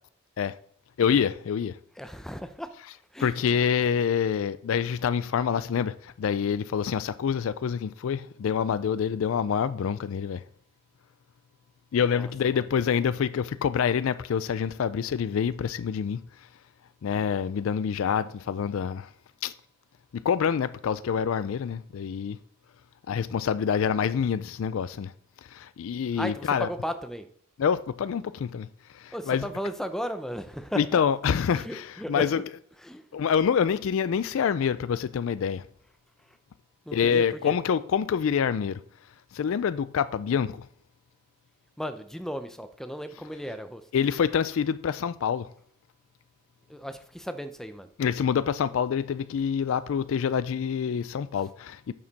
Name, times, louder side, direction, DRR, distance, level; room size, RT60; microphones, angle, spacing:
voice 1, 1.0-1.8 3.2-10.4 11.9-16.2 17.0-19.1 19.4-19.5 20.1-22.4 23.1-25.1 25.5-26.7 27.6-28.7 28.9-29.5 30.8-32.4 33.1-35.6 36.9-38.8 39.3-40.7 43.9-45.5 48.0-51.9, left 7 dB, 65° left, 0.3 m, -26 dB
voice 2, 2.0-2.7 3.1-3.4 12.1-12.6 26.2-27.3 29.1-31.0 31.5-32.3 32.8-33.0 36.9-37.6 41.8-43.8 46.7-47.9, equal, ahead, 0.5 m, -35 dB
8.6 x 6.5 x 4.1 m
head